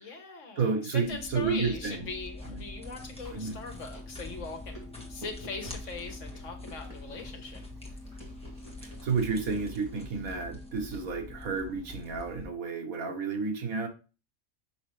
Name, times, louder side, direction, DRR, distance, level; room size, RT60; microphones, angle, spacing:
voice 1, 0.0-4.8 5.1-7.6, left 4 dB, 60° left, 4 dB, 1.6 m, -40 dB
voice 2, 0.6-2.0 2.5-2.6 3.3-3.6 8.8-13.9, right 5 dB, 85° right, 4 dB, 1.7 m, -31 dB
sound 1, 1.0-12.5, left 2 dB, 5° left, 1.5 m, -44 dB
Chewing mastication, 3.2-10.4, equal, 25° right, 2.5 m, -52 dB
6.4 x 5.8 x 3.2 m, 0.34 s
omnidirectional pair, 1.4 m